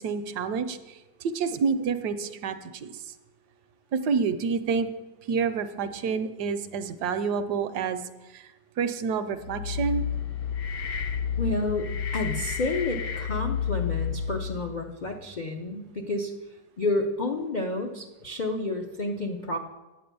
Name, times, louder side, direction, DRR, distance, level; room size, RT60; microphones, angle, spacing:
voice 1, 0.0-3.1 3.9-4.9 5.3-8.0 8.3-8.5 8.8-10.0, right 5 dB, 70° right, 10 dB, 1.1 m, -28 dB
sound 1, 9.4-14.7, left 7 dB, 65° left, 1.0 m, -30 dB
voice 2, 11.4-16.3 16.8-19.6, left 2 dB, 85° left, 2 dB, 0.4 m, -30 dB
9.0 x 8.6 x 6.8 m, 1.1 s
omnidirectional pair, 2.0 m